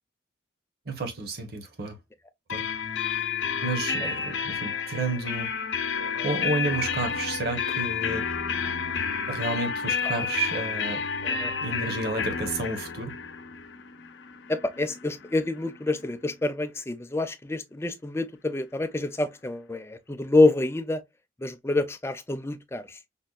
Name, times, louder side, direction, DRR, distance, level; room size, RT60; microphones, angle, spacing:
voice 1, 0.9-2.0 2.5-2.7 3.6-5.5 6.2-8.2 9.3-11.0 11.6-13.1, right 3 dB, 55° right, 0.9 m, -31 dB
sound 1, 2.5-16.1, left 6 dB, 85° left, 0.5 m, -31 dB
voice 2, 14.5-21.0 21.4-23.0, left 2 dB, 15° left, 0.4 m, -27 dB
5.3 x 2.2 x 2.3 m
head